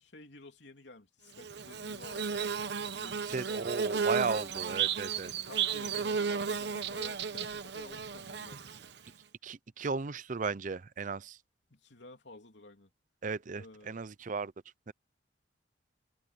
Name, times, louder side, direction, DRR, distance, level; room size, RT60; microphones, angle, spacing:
voice 1, 0.0-2.4 2.9-3.5 5.4-9.1 11.7-12.9 13.5-14.0, left 2 dB, 70° left, 3.2 m, -52 dB
Bird / Buzz, 1.4-9.1, right 6 dB, 60° right, 1.0 m, -34 dB
voice 2, 3.3-5.3 9.4-11.4 13.2-14.5 14.9-15.0, right 4 dB, 40° right, 0.5 m, -35 dB
head